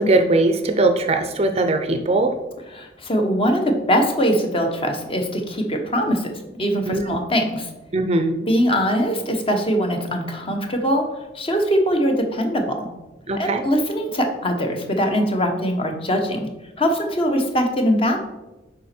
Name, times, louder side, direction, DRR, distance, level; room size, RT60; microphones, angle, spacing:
voice 1, 0.0-2.3 6.9-7.2 7.9-8.3 13.3-13.6, right 2 dB, 35° right, 7 dB, 0.5 m, -20 dB
voice 2, 2.7-7.7 8.4-11.0 11.3-12.9 13.3-16.5 16.8-18.2, equal, 30° left, 4 dB, 1.0 m, -22 dB
7.3 x 5.1 x 4.4 m, 1.0 s
head